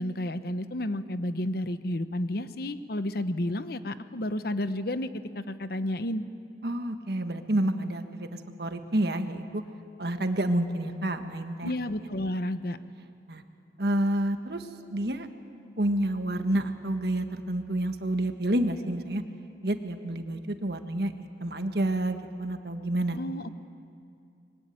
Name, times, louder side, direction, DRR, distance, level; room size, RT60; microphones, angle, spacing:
voice 1, 0.0-5.1 5.4-6.2 11.6-12.8 23.2-23.5, left 1 dB, 60° left, 11 dB, 1.0 m, -31 dB
voice 2, 6.6-9.6 10.0-11.7 13.3-13.4 13.8-15.3 15.8-19.2 19.6-23.2, right 1 dB, 60° right, 7 dB, 1.6 m, -29 dB
25.0 x 22.5 x 9.4 m, 2.5 s
head